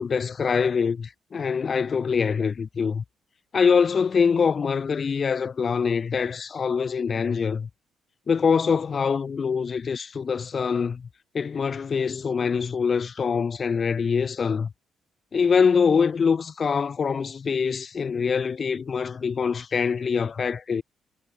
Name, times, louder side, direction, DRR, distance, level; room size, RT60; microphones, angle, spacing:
voice 1, 0.0-3.0 3.5-7.7 8.3-11.1 11.3-14.7 15.3-20.8, left 6 dB, 40° left, 0.7 m, -24 dB
cardioid pair, 90°, 0 cm